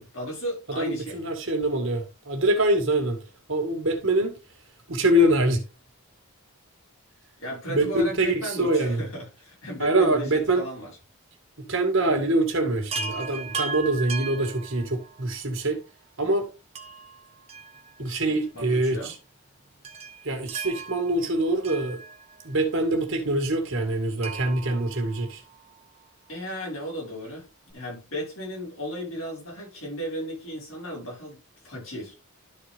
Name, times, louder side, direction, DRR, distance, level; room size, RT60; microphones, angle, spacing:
voice 1, 0.1-1.2 7.4-10.9 18.0-19.1 26.3-27.5 27.7-31.4 31.6-32.1, equal, 65° left, 5.1 m, -35 dB
voice 2, 0.8-3.2 3.5-4.3 4.9-5.6 7.7-9.0 9.8-10.6 11.7-15.8 16.2-16.5 18.0-19.1 20.2-22.0 22.4-25.4, right 1 dB, 60° right, 2.0 m, -24 dB
Chime, 12.9-15.3 16.7-18.3 18.5-18.6 19.8-22.5 24.2-25.8 27.4-27.5 27.7-27.8, right 5 dB, 30° right, 1.0 m, -37 dB
12.5 x 4.4 x 3.4 m
head